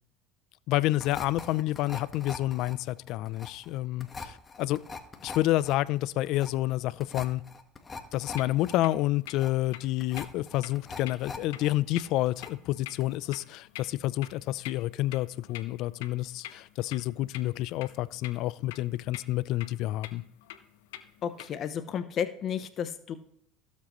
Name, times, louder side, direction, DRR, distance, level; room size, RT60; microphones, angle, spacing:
voice 1, 0.7-4.8 5.2-7.4 8.1-20.2, left 16 dB, 65° left, 18 dB, 0.5 m, -29 dB
sound 1, 1.0-11.7 12.0-12.7 13.0-13.2, left 4 dB, 20° left, 1.4 m, -43 dB
sound 2, 8.1-21.7, left 12 dB, 90° left, 1.1 m, -48 dB
voice 2, 21.2-23.2, left 8 dB, 45° left, 10 dB, 0.8 m, -32 dB
16.5 x 7.5 x 3.1 m, 0.68 s
supercardioid pair, 110°, 0 cm